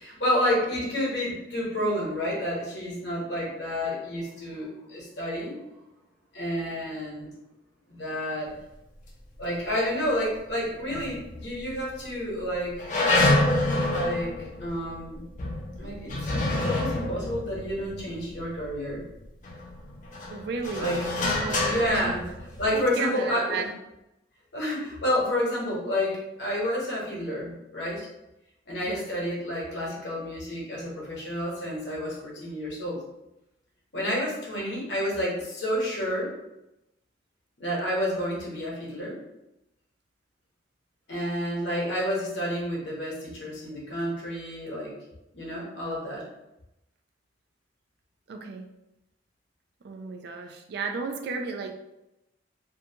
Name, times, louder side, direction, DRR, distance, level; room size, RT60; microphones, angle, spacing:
voice 1, 0.0-5.6 6.3-7.3 7.9-8.6 9.4-12.9 13.9-14.3 14.6-15.2 15.8-19.0 20.8-21.0 21.7-22.3 22.6-23.7 24.5-28.1 28.7-33.0 33.9-36.3 37.6-39.2 41.1-44.9 45.3-46.2, equal, 65° left, -4 dB, 1.0 m, -30 dB
sound 1, 10.9-11.7 12.0-12.1 12.8-19.0 19.4-22.8, left 2 dB, 45° left, 0.5 m, -27 dB
voice 2, 20.3-22.1 22.7-23.7 28.9-29.0 48.3-48.7 49.8-51.7, right 4 dB, 60° right, 4 dB, 0.4 m, -33 dB
2.6 x 2.2 x 2.7 m, 0.91 s
head